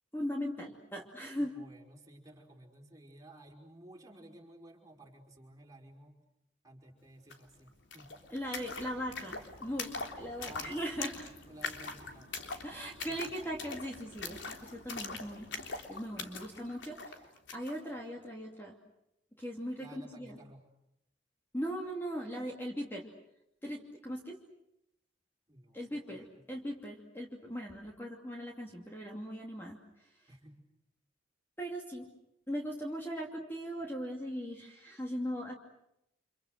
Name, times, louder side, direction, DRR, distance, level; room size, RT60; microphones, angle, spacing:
voice 1, 0.1-1.5 8.3-11.3 12.6-15.5 15.9-17.2 17.5-18.8 19.4-20.4 21.5-23.1 23.6-24.4 25.7-30.1 31.6-32.1 32.5-35.5, equal, 10° left, 0 dB, 2.7 m, -39 dB
voice 2, 1.4-6.2 6.6-8.1 10.4-10.8 11.5-12.4 13.1-13.2 15.2-15.3 19.8-20.7 25.5-25.8 26.1-26.4 30.3-30.6, right 1 dB, 20° right, 0 dB, 5.3 m, -54 dB
sound 1, 7.3-7.4 7.6-17.8, left 4 dB, 90° left, 3.4 m, -43 dB
30.0 x 27.5 x 6.6 m, 0.81 s
head